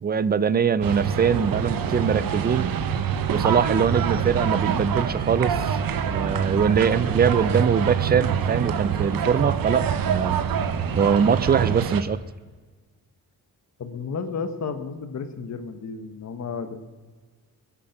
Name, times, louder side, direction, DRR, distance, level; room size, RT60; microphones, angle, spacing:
voice 1, 0.0-2.7 3.3-5.8 6.1-10.5 11.0-12.2, right 7 dB, 30° right, 17 dB, 0.4 m, -22 dB
sound 1, 0.8-12.0, right 7 dB, 75° right, 1.1 m, -25 dB
voice 2, 13.8-16.8, left 5 dB, 50° left, 9 dB, 1.3 m, -32 dB
21.5 x 9.9 x 5.9 m, 1.4 s
wide cardioid pair, 170°, 35 cm